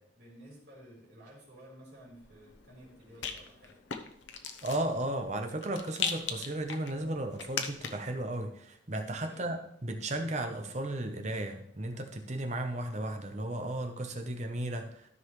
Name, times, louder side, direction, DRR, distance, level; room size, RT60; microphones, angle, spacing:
voice 1, 0.1-3.8 9.3-9.6, equal, 55° right, -4 dB, 3.9 m, -53 dB
Rattle, 2.1-8.2, left 6 dB, 75° left, 0.8 m, -40 dB
voice 2, 4.6-15.1, right 1 dB, 35° right, 5 dB, 0.8 m, -35 dB
13.0 x 5.5 x 3.2 m, 0.68 s
head